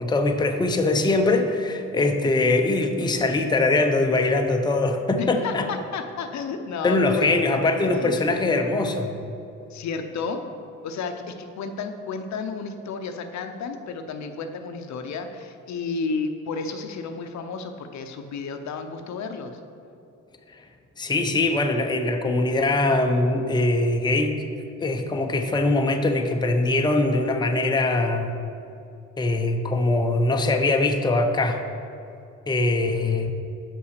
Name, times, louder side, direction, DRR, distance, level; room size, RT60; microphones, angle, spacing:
voice 1, 0.0-5.7 6.8-9.2 21.0-24.3 24.8-28.4 29.2-31.6 32.5-33.3, left 2 dB, 15° left, 4 dB, 0.6 m, -22 dB
voice 2, 5.2-8.3 9.7-10.4 10.8-19.6, left 4 dB, 65° left, 6 dB, 0.7 m, -32 dB
5.7 x 5.4 x 6.6 m, 2.6 s
cardioid pair, 90°, 30 cm